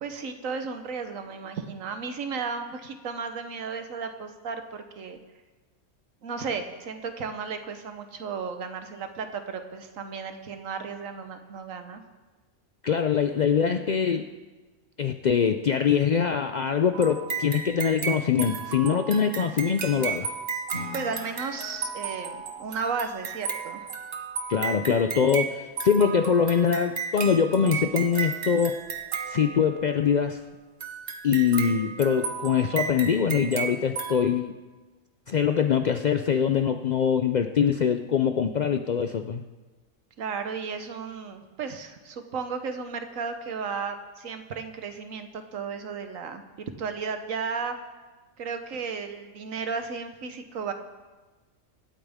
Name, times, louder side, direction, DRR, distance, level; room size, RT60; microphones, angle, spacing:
voice 1, 0.0-5.2 6.2-12.0 20.9-23.9 40.2-47.8 48.4-50.7, right 5 dB, 80° right, 7 dB, 1.4 m, -34 dB
voice 2, 12.8-14.3 15.0-20.3 24.5-28.8 29.3-30.4 31.2-34.5 35.3-39.4, left 7 dB, 80° left, 6 dB, 0.4 m, -23 dB
sound 1, 16.9-30.0 30.8-34.1, right 5 dB, 50° right, 1.2 m, -34 dB
Acoustic guitar / Strum, 20.7-24.2, left 4 dB, 55° left, 5.6 m, -45 dB
25.5 x 8.8 x 3.6 m, 1.3 s
omnidirectional pair, 1.4 m